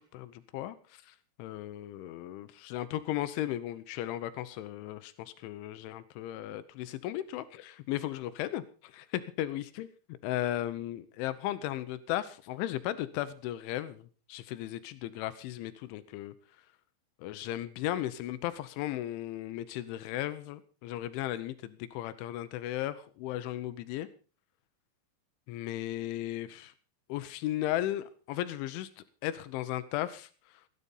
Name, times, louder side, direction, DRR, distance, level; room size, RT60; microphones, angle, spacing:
voice 1, 0.0-16.3 17.2-24.1 25.5-26.7 27.1-30.3, left 13 dB, 85° left, 13 dB, 3.3 m, -36 dB
16.5 x 11.5 x 5.5 m, 0.38 s
omnidirectional pair, 5.3 m